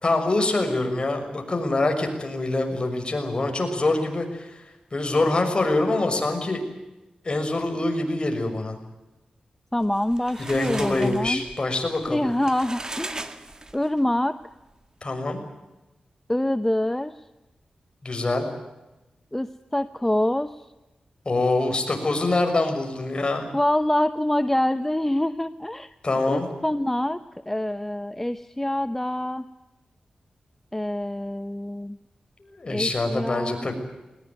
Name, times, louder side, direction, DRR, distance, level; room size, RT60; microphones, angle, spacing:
voice 1, 0.0-4.6 4.9-6.6 7.2-8.8 10.5-12.3 15.0-15.4 18.0-18.5 21.2-23.5 26.0-26.5 32.4-33.7, left 2 dB, 40° left, 5 dB, 6.3 m, -25 dB
voice 2, 9.7-11.4 12.1-13.3 13.7-14.3 16.3-17.1 19.3-20.6 23.5-25.9 26.3-27.2 27.5-29.5 30.7-32.0 32.7-33.7, left 1 dB, 10° left, 11 dB, 0.9 m, -25 dB
sound 1, 9.8-14.0, right 2 dB, 25° right, 2.0 m, -37 dB
20.5 x 20.5 x 9.5 m, 1.0 s
cardioid pair, 75°, 3 cm